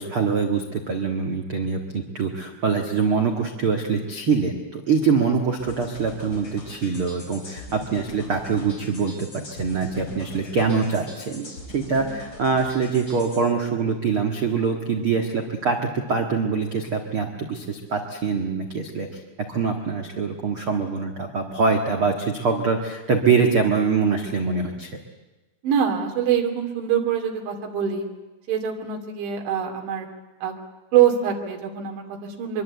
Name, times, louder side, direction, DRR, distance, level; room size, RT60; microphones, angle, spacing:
voice 1, 0.0-19.2 19.5-24.9, right 5 dB, 50° right, 3 dB, 1.6 m, -24 dB
sound 1, 5.6-13.4, left 1 dB, 30° left, 5.3 m, -42 dB
voice 2, 25.6-28.1 28.5-30.1 30.4-30.5 30.9-32.6, right 9 dB, 90° right, 2 dB, 5.0 m, -24 dB
24.0 x 24.0 x 8.2 m, 1.1 s
omnidirectional pair, 5.2 m